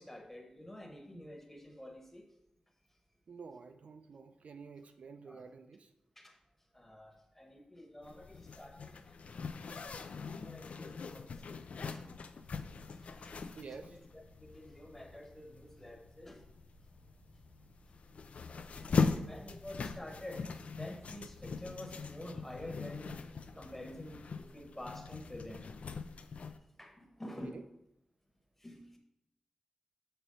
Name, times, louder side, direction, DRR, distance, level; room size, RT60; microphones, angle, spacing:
voice 1, 0.0-2.4 5.2-5.5 6.2-6.4 6.7-9.6 10.1-11.4 11.9-12.1 12.9-16.4 18.7-23.2 23.5-25.7 26.2-27.6 28.6-29.0, left 1 dB, 15° left, 2 dB, 1.0 m, -49 dB
voice 2, 3.3-5.9 13.6-14.0 27.4-27.6, right 5 dB, 75° right, 7 dB, 0.4 m, -50 dB
Zipper (clothing), 8.0-26.6, left 4 dB, 75° left, 0.4 m, -41 dB
sound 1, 12.4-24.3, right 1 dB, 90° right, 1.7 m, -63 dB
6.6 x 3.0 x 5.3 m, 0.82 s
wide cardioid pair, 110°, 2 cm